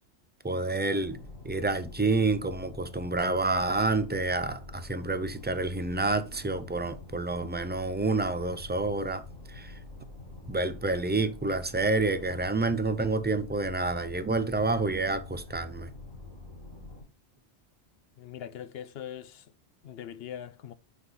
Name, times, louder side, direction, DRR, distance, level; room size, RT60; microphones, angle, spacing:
voice 1, 0.4-1.2 1.4-9.2 9.5-9.8 10.5-15.9, right 3 dB, 15° right, 0.3 m, -28 dB
sound 1, 1.0-17.0, left 2 dB, 65° right, 4.0 m, -46 dB
voice 2, 18.2-19.5 19.8-20.7, left 10 dB, 65° left, 0.8 m, -41 dB
8.2 x 5.8 x 3.8 m
omnidirectional pair, 1.2 m